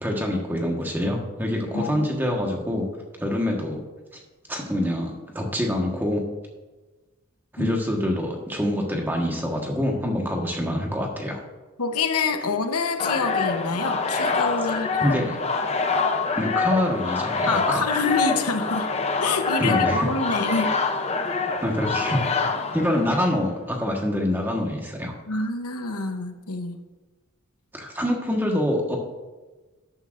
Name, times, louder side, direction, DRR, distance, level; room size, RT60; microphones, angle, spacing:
voice 1, 0.0-2.8 3.2-3.8 4.5-6.2 7.5-11.4 15.0-15.4 16.3-17.8 19.6-20.1 21.6-22.2 22.7-25.1 27.7-29.0, left 1 dB, 10° right, 0 dB, 1.3 m, -25 dB
voice 2, 1.7-2.1 7.6-7.8 11.8-15.2 17.5-18.9 19.2-20.7 25.3-26.8, left 4 dB, 85° left, 6 dB, 0.9 m, -27 dB
sound 1, 13.0-23.5, left 4 dB, 30° left, 0.6 m, -25 dB
12.5 x 9.8 x 2.6 m, 1.2 s
head